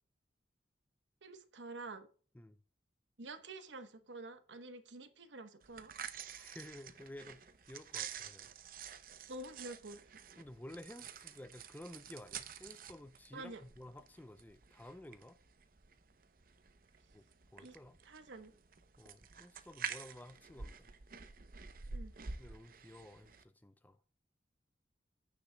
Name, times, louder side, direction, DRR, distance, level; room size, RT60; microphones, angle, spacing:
voice 1, 1.2-2.1 3.2-5.9 9.3-10.0 13.3-13.6 17.6-17.8 18.0-18.5 21.9-22.1, right 2 dB, 85° right, 1.0 m, -48 dB
sound 1, 5.6-23.4, right 6 dB, 50° right, 0.7 m, -49 dB
voice 2, 6.2-7.4 7.7-8.5 10.4-15.4 17.1-17.2 17.5-18.0 19.0-20.9 22.4-24.0, left 1 dB, 10° left, 0.4 m, -53 dB
15.0 x 7.1 x 2.2 m
head